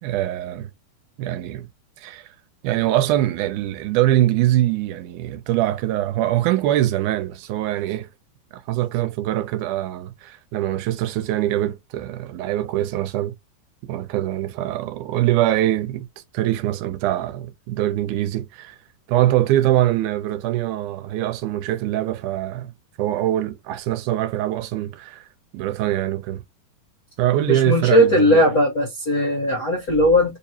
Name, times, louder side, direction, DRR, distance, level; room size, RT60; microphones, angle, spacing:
voice 1, 0.0-0.7 1.2-1.7 2.0-2.3 2.6-8.1 8.7-13.3 13.9-16.1 16.3-18.8 19.1-22.7 23.0-25.2 25.5-26.4 27.2-28.4, right 13 dB, 85° right, 2.1 m, -23 dB
voice 2, 27.5-30.4, left 1 dB, 65° left, 0.9 m, -18 dB
4.5 x 2.8 x 2.8 m
omnidirectional pair, 3.5 m